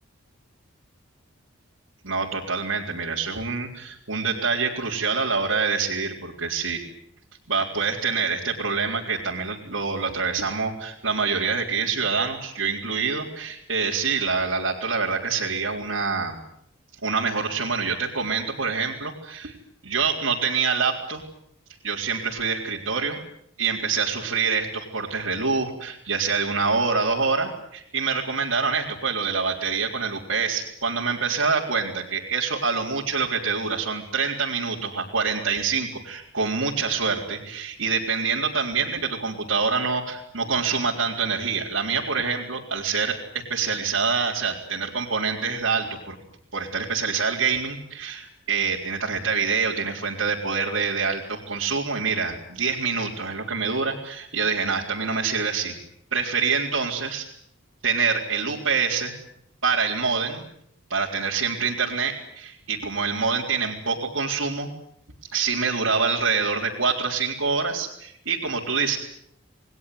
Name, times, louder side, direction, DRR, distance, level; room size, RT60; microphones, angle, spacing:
voice 1, 2.0-6.8 7.5-16.4 17.0-19.5 19.8-21.2 21.8-23.2 23.6-46.2 46.5-55.7 56.1-57.2 57.8-59.1 59.6-60.4 60.9-64.7 65.3-69.0, right 5 dB, 85° right, -4 dB, 4.0 m, -26 dB
29.0 x 21.0 x 9.5 m, 0.72 s
head